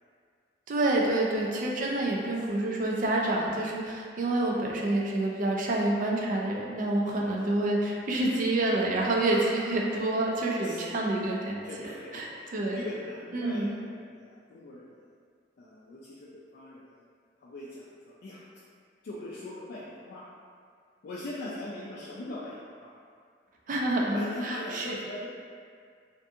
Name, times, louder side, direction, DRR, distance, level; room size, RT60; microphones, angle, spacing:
voice 1, 0.7-12.3 12.5-12.8 13.3-13.7 23.7-24.9, right 2 dB, 45° right, -1 dB, 0.4 m, -28 dB
voice 2, 1.6-2.2 7.0-7.5 8.2-8.4 9.3-9.4 9.8-9.9 10.6-10.9 11.6-12.5 12.7-15.1 15.6-17.0 17.4-18.4 19.0-20.2 21.0-22.9 24.0-25.3, left 1 dB, 60° left, -7 dB, 0.3 m, -41 dB
2.6 x 2.3 x 2.6 m, 2.1 s
head